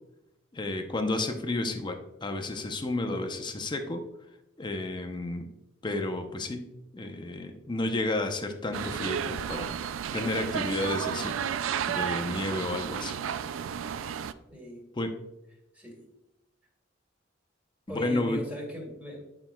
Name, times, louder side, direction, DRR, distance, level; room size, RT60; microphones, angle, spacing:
voice 1, 0.5-4.0 4.6-5.5 5.8-6.7 6.9-9.8 10.1-11.4 11.9-13.2 15.0-15.1 17.9-18.4, left 2 dB, 25° left, 5 dB, 0.6 m, -31 dB
sound 1, 8.7-14.3, right 8 dB, 90° right, 0.3 m, -32 dB
voice 2, 14.5-14.9 15.7-16.0 17.9-19.2, left 1 dB, 10° right, -1 dB, 1.9 m, -38 dB
9.2 x 5.8 x 2.2 m, 0.90 s
head